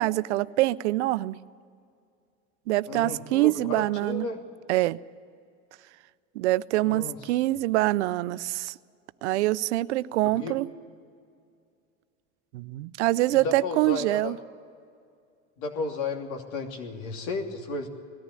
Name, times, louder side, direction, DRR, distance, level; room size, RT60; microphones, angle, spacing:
voice 1, 0.0-1.4 2.7-4.3 4.7-5.0 6.4-8.7 9.2-10.7 12.5-14.4, right 17 dB, 85° right, 17 dB, 0.6 m, -25 dB
voice 2, 2.9-4.4 6.8-7.2 10.2-10.6 13.3-14.3 15.6-17.9, left 3 dB, 65° left, 3 dB, 3.0 m, -33 dB
19.5 x 14.0 x 9.8 m, 2.3 s
supercardioid pair, 95°, 33 cm